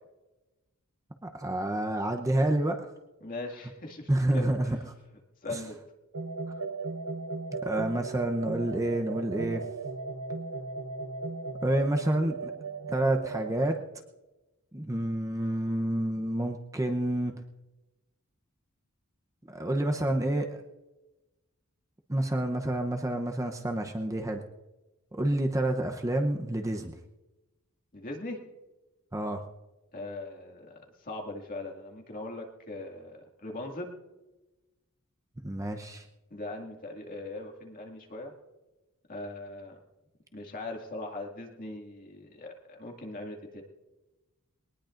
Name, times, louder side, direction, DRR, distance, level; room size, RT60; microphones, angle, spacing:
voice 1, 1.2-2.9 4.1-4.8 5.5-5.6 7.6-9.6 11.6-12.5 12.9-13.8 14.7-17.4 19.4-20.6 22.1-24.4 25.1-26.9 29.1-29.4 35.4-36.1, right 1 dB, 15° right, 3 dB, 0.8 m, -28 dB
voice 2, 3.2-4.7 5.4-5.8 27.9-28.4 29.9-34.0 36.3-38.3 39.1-39.8 40.3-43.6, left 2 dB, 40° left, 1 dB, 2.2 m, -40 dB
sound 1, 6.1-13.5, right 4 dB, 90° right, 0.9 m, -37 dB
21.0 x 19.0 x 2.6 m, 1.1 s
head